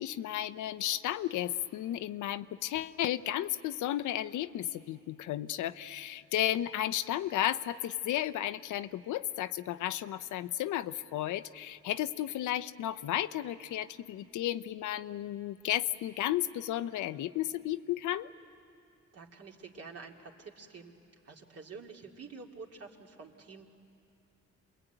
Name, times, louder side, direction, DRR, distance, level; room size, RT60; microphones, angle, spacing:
voice 1, 0.0-18.3, left 12 dB, 80° left, 12 dB, 0.7 m, -33 dB
voice 2, 19.1-20.9 21.2-23.8, right 4 dB, 55° right, 0 dB, 2.6 m, -48 dB
27.5 x 21.5 x 9.1 m, 2.6 s
cardioid pair, 90°, 30 cm